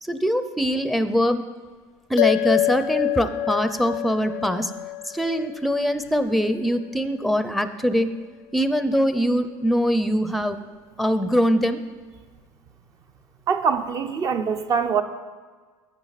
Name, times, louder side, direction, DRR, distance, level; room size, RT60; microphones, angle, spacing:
voice 1, 0.0-1.4 2.1-4.7 5.1-8.1 8.5-10.6 11.0-11.8, equal, ahead, 10 dB, 0.6 m, -22 dB
sound 1, 2.2-6.9, left 15 dB, 70° left, 0.5 m, -27 dB
voice 2, 13.5-15.0, right 6 dB, 40° right, 8 dB, 0.7 m, -23 dB
11.0 x 8.9 x 4.1 m, 1.5 s
supercardioid pair, 120°, 9 cm